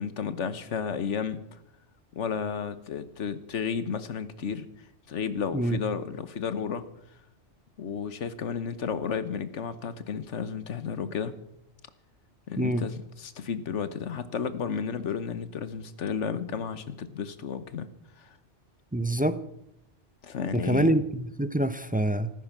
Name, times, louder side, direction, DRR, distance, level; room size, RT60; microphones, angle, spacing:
voice 1, 0.0-1.4 2.1-4.7 5.1-6.9 7.8-11.4 12.5-17.9 18.2-18.3 20.2-20.9, left 6 dB, 80° left, 13 dB, 1.3 m, -32 dB
voice 2, 12.6-12.9 18.9-19.4 20.5-22.3, right 1 dB, 10° right, 13 dB, 0.4 m, -26 dB
14.5 x 14.0 x 6.0 m, 0.80 s
omnidirectional pair, 1.2 m